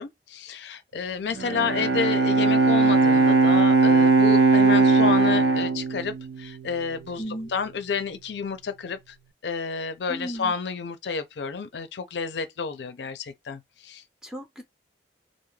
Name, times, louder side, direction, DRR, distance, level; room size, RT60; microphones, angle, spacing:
voice 1, 0.0-9.1 9.4-14.0, left 5 dB, 75° left, 0.5 m, -30 dB
Bowed string instrument, 1.3-6.8, right 3 dB, 80° right, 0.4 m, -19 dB
voice 2, 7.2-7.5 10.1-10.5 14.2-14.6, equal, 5° right, 0.6 m, -35 dB
2.3 x 2.0 x 3.1 m
head